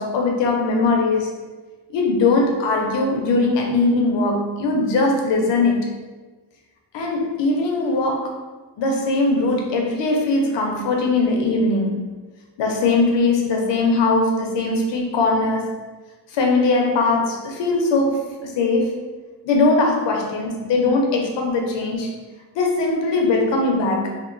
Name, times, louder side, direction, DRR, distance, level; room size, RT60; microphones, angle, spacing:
voice 1, 0.0-1.4 1.9-6.0 6.9-8.4 8.8-12.1 12.6-15.8 16.3-19.0 19.4-22.2 22.5-24.2, left 3 dB, 65° left, 1 dB, 0.6 m, -20 dB
2.9 x 2.1 x 2.4 m, 1.3 s
cardioid pair, 135°, 46 cm